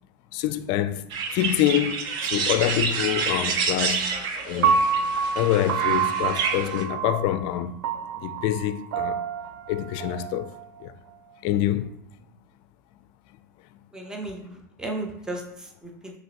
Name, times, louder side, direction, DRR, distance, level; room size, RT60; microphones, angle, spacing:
voice 1, 0.3-1.0 1.3-4.0 4.5-4.8 5.3-7.7 8.2-9.2 9.7-10.5 10.8-10.9 11.4-11.9, left 12 dB, 55° left, 0.4 m, -26 dB
sound 1, 1.1-6.8, right 5 dB, 45° right, 0.7 m, -28 dB
Piano, 4.6-10.8, right 6 dB, 75° right, 0.4 m, -27 dB
voice 2, 13.9-16.1, right 2 dB, 5° right, 0.6 m, -35 dB
5.5 x 3.0 x 2.9 m
supercardioid pair, 115°, 10 cm